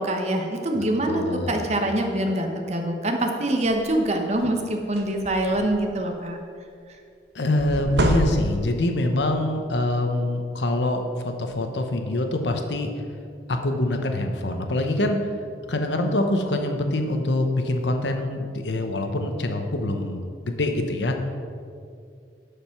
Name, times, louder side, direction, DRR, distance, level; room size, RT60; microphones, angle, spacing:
voice 1, 0.0-6.4, right 1 dB, 40° right, 3 dB, 1.1 m, -25 dB
voice 2, 0.8-1.6 7.3-12.9 13.5-15.2 15.7-21.2, left 1 dB, 85° left, 5 dB, 1.0 m, -25 dB
sound 1, 3.6-3.9 4.4-4.5 4.8-5.9 7.6-8.8, right 1 dB, 75° right, 0.9 m, -26 dB
11.5 x 5.1 x 5.9 m, 2.3 s
head